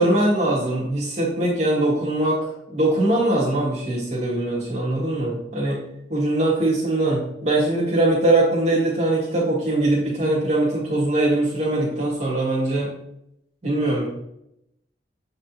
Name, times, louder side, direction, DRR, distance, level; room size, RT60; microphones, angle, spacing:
voice 1, 0.0-5.8 6.1-12.9 13.6-14.1, right 1 dB, 40° right, -7 dB, 2.0 m, -21 dB
7.8 x 5.2 x 2.9 m, 0.78 s
head